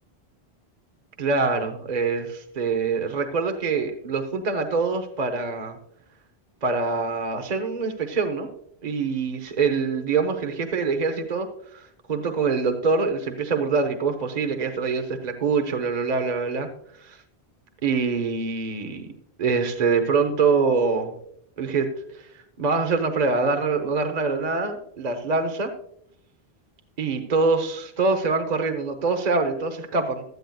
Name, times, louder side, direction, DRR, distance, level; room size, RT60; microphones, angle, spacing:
voice 1, 1.2-5.8 6.6-8.5 8.8-11.5 11.7-16.7 17.0-17.2 17.8-19.1 19.4-21.1 21.6-21.9 22.1-22.3 22.6-25.7 27.0-30.2, right 4 dB, 45° right, 6 dB, 1.0 m, -24 dB
16.0 x 12.0 x 2.3 m, 0.70 s
omnidirectional pair, 1.1 m